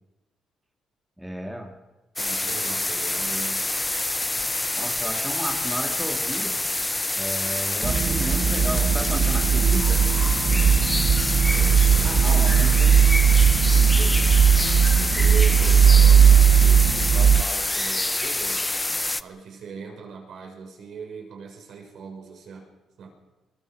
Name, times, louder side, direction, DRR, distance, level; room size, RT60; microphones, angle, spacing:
voice 1, 1.2-1.8 4.8-6.6 7.1-10.1 12.0-12.9, equal, 5° right, 2 dB, 2.9 m, -33 dB
sound 1, 2.2-19.2, left 2 dB, 15° left, 0.7 m, -26 dB
voice 2, 2.2-3.7 10.4-11.0 11.5-13.1 13.7-18.7 19.2-22.7 23.0-23.1, right 5 dB, 65° right, 1 dB, 6.3 m, -39 dB
sound 2, 7.8-17.4, right 7 dB, 50° right, 0.8 m, -18 dB
23.5 x 23.0 x 5.2 m, 1.1 s
cardioid pair, 90°, 0 cm